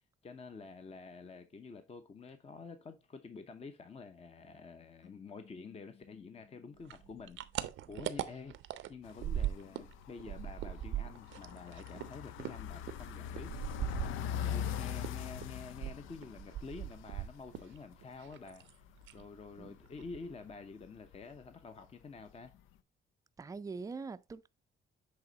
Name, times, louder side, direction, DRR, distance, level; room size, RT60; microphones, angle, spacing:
voice 1, 0.2-7.4 7.9-8.6 8.9-13.7 14.4-18.8 19.1-22.5, left 4 dB, 30° left, 0.7 m, -49 dB
sound 1, 5.0-8.2, left 8 dB, 60° left, 1.2 m, -62 dB
sound 2, 6.9-9.9 10.2-14.7 15.0-17.8 18.0-18.7 19.0-19.3 19.6-19.7 20.0-20.5, right 11 dB, 80° right, 0.6 m, -40 dB
sound 3, 9.1-17.9 18.3-18.4 18.6-20.4 20.8-21.5 21.8-21.9 22.5-22.6, left 9 dB, 85° left, 0.4 m, -42 dB
voice 2, 23.4-24.5, right 4 dB, 15° right, 0.4 m, -43 dB
7.9 x 3.3 x 3.8 m
cardioid pair, 90°, 20 cm